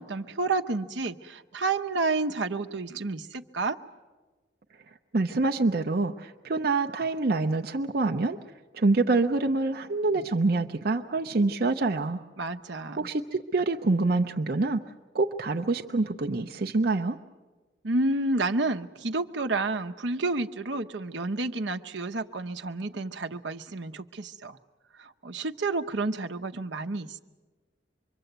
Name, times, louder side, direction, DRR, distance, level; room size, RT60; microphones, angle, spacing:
voice 1, 0.0-3.8 12.4-13.1 17.8-24.6 25.0-27.2, right 3 dB, 75° right, 6 dB, 1.0 m, -30 dB
voice 2, 5.1-8.4 8.7-12.2 13.0-14.8 15.1-17.2, right 3 dB, 55° right, 4 dB, 0.7 m, -26 dB
25.5 x 23.5 x 8.0 m, 1.3 s
head